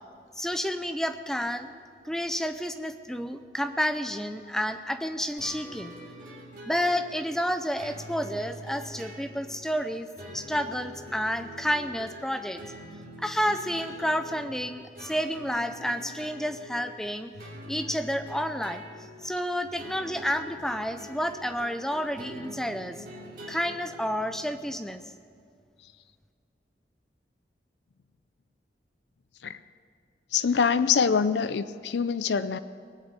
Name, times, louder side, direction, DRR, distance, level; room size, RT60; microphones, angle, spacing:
voice 1, 0.4-6.0 6.6-10.1 10.3-12.6 13.2-17.3 17.7-18.8 19.2-23.0 23.5-25.0, equal, 5° left, 9 dB, 0.5 m, -30 dB
sound 1, 5.4-24.6, equal, 50° right, 3.0 m, -45 dB
voice 2, 30.3-32.6, left 6 dB, 85° left, 13 dB, 0.5 m, -24 dB
19.5 x 8.1 x 8.3 m, 2.2 s
head